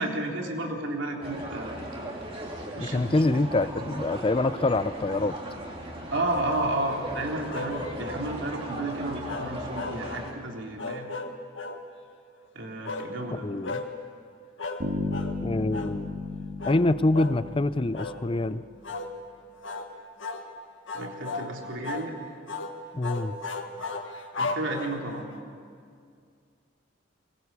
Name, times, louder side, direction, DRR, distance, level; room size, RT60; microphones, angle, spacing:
voice 1, 0.0-1.8 2.8-3.2 6.1-11.1 12.5-13.5 20.9-22.2 24.4-25.3, right 1 dB, 70° right, 0 dB, 3.6 m, -32 dB
sound 1, 1.2-10.3, right 1 dB, 30° right, 3.1 m, -38 dB
voice 2, 2.8-5.4 13.3-13.8 15.4-16.2 16.6-18.6 22.9-23.4, left 2 dB, 25° left, 15 dB, 0.5 m, -25 dB
sound 2, 7.5-8.3 9.3-10.3 10.8-11.8 12.8-13.1 13.6-13.9 14.6-14.8 15.1-15.4 15.7-16.0 16.6-16.8 17.1-17.4 17.9-18.2 18.8-19.1 19.6-19.9 20.2-20.5 20.9-21.5 21.8-22.1 22.5-22.7 23.0-25.1, left 3 dB, 70° left, 1.7 m, -35 dB
Bass guitar, 14.8-18.6, left 2 dB, 45° right, 2.5 m, -34 dB
23.5 x 20.5 x 8.4 m, 2.2 s
head